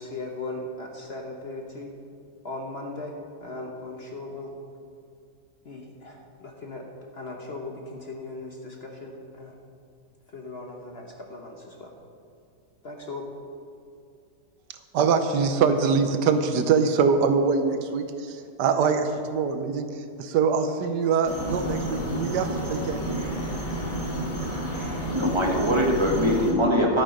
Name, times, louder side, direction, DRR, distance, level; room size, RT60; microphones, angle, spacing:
voice 1, 0.0-1.9 2.4-3.1 3.4-4.5 5.6-6.8 7.1-9.5 10.3-11.9 12.8-13.3, left 2 dB, 45° left, 1 dB, 1.0 m, -38 dB
voice 2, 14.9-23.0, right 5 dB, 80° right, 8 dB, 1.3 m, -24 dB
sound 1, 21.2-26.5, right 1 dB, 30° left, 1.8 m, -30 dB
voice 3, 25.0-27.0, equal, 15° right, 0 dB, 1.4 m, -22 dB
12.0 x 8.9 x 5.2 m, 2.5 s
omnidirectional pair, 1.8 m